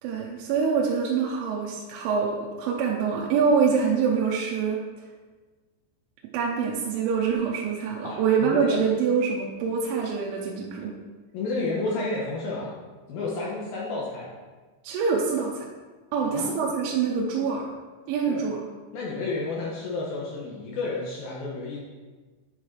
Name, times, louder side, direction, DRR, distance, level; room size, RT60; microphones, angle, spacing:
voice 1, 0.0-5.1 6.3-10.9 14.8-15.7 16.1-17.7 18.1-18.6, right 6 dB, 90° right, -2 dB, 3.2 m, -25 dB
voice 2, 8.0-8.8 11.3-12.7 13.1-14.3 16.1-16.5 18.3-18.4 18.9-21.8, left 3 dB, 75° left, -4 dB, 2.2 m, -31 dB
10.0 x 4.9 x 4.5 m, 1.3 s
omnidirectional pair, 5.5 m